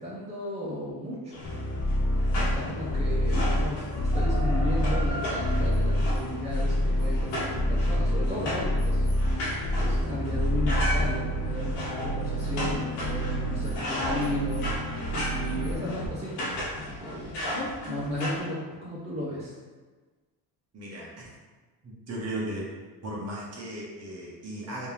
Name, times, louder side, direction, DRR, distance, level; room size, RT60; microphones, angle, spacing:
voice 1, 0.0-1.5 2.4-14.7 15.3-19.5, left 1 dB, 15° right, -7 dB, 0.9 m, -35 dB
sound 1, 1.3-18.4, equal, 80° left, 1.3 m, -35 dB
sound 2, 1.4-16.1, equal, 35° left, 0.5 m, -27 dB
voice 2, 20.7-21.3 21.8-22.7 23.0-24.9, right 1 dB, 40° right, -5 dB, 1.2 m, -36 dB
3.3 x 2.9 x 3.4 m, 1.3 s
cardioid pair, 110°, 40 cm